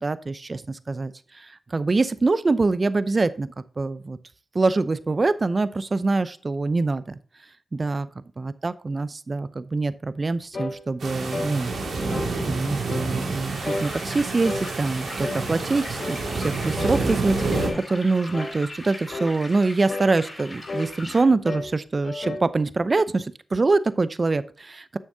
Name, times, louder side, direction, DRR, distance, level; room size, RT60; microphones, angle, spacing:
voice 1, 0.0-3.5 3.8-4.2 4.5-7.2 7.7-8.1 8.4-11.7 12.5-25.0, right 3 dB, 45° right, 15 dB, 0.6 m, -24 dB
sound 1, 10.5-10.8 11.3-11.5 12.1-12.3 12.9-13.1 13.6-13.9 14.4-14.7 15.2-15.5 16.0-16.2 16.8-17.0 17.5-17.8 18.3-18.6 19.1-19.3 19.9-20.1 20.7-20.9 21.4-21.7 22.0-22.5, left 2 dB, 55° left, 1.2 m, -31 dB
sound 2, 11.0-17.7, right 3 dB, 85° right, 2.2 m, -28 dB
sound 3, 13.5-21.2, left 1 dB, 30° left, 4.3 m, -40 dB
11.0 x 7.1 x 2.7 m, 0.42 s
cardioid pair, 45°, 0 cm